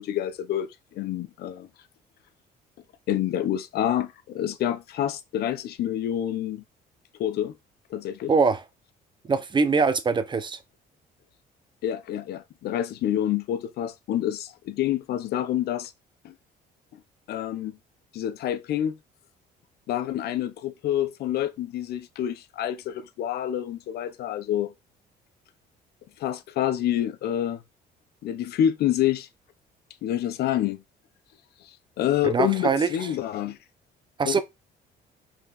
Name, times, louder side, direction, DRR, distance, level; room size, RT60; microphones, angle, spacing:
voice 1, 0.0-1.7 3.1-6.6 7.2-7.5 7.9-8.3 11.8-15.9 16.2-16.3 17.3-17.8 18.1-19.0 19.9-24.7 26.2-27.6 28.2-29.3 30.0-30.8 31.6-33.6 34.2-34.4, left 11 dB, 70° left, 1.1 m, -27 dB
voice 2, 8.3-8.6 9.3-10.6 32.2-32.9 34.2-34.4, right 4 dB, 25° right, 1.1 m, -22 dB
6.0 x 5.0 x 4.2 m
cardioid pair, 110°, 17 cm